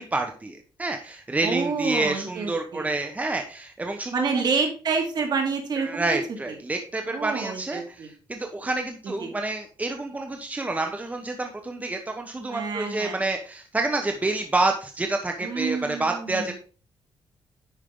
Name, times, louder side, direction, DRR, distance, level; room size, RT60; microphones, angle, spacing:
voice 1, 0.0-4.4 5.8-16.6, right 2 dB, 15° right, 5 dB, 1.1 m, -28 dB
voice 2, 1.4-2.9 4.1-6.0 7.1-8.1 9.2-9.3 12.5-13.2 15.4-16.5, right 5 dB, 55° right, 3 dB, 2.4 m, -28 dB
10.5 x 5.5 x 3.8 m, 0.38 s
cardioid pair, 105°, 9 cm